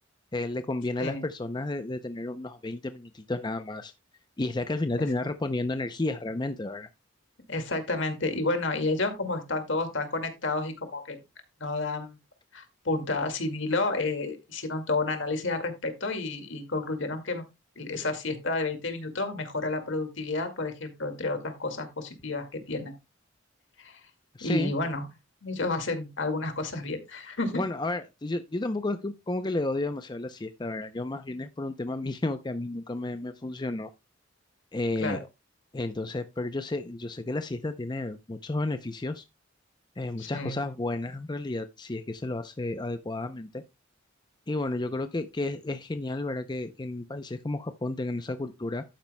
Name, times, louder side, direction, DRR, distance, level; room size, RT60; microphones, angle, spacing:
voice 1, 0.3-3.9 4.4-6.9 24.3-24.7 27.5-33.9 34.7-35.3 35.7-39.2 40.0-43.6 44.5-48.8, left 2 dB, 20° left, 0.5 m, -32 dB
voice 2, 7.5-11.2 11.6-12.2 12.5-17.4 17.8-22.9 23.8-24.0 24.4-25.1 25.4-27.6 35.0-35.2 40.2-40.6, left 2 dB, 65° left, 2.1 m, -30 dB
11.5 x 9.4 x 2.2 m
head